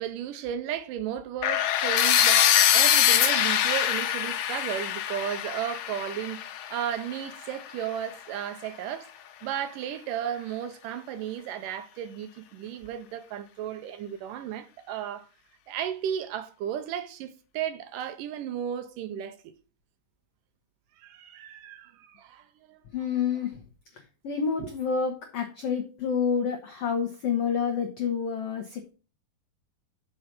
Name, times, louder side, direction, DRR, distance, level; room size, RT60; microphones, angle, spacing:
voice 1, 0.0-9.1 9.4-15.3 15.7-19.4 21.0-22.8 24.6-24.7, right 10 dB, 80° right, 2.1 m, -34 dB
sound 1, 1.4-7.3, left 10 dB, 70° left, 2.1 m, -23 dB
voice 2, 22.9-23.6 23.9-28.9, left 6 dB, 90° left, 1.3 m, -29 dB
6.7 x 5.6 x 5.8 m
omnidirectional pair, 4.1 m